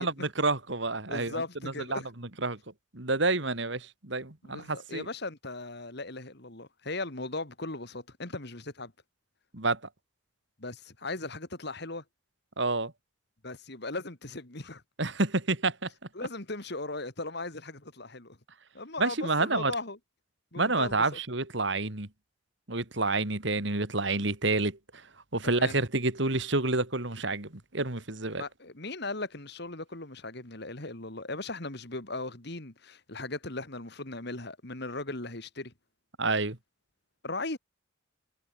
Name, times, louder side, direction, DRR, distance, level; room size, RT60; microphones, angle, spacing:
voice 1, 0.0-1.4 1.9-2.0 2.4-2.6 2.9-5.1 9.5-9.8 12.6-12.9 15.0-15.9 19.0-19.7 20.6-22.1 22.7-24.8 25.3-28.4 36.2-36.6, right 3 dB, 60° right, 2.5 m, -28 dB
voice 2, 1.1-2.1 4.4-8.9 10.6-12.0 13.4-14.8 16.1-18.4 18.7-20.0 20.5-21.2 25.4-25.8 28.3-35.7 37.2-37.6, left 2 dB, 55° left, 2.6 m, -38 dB
head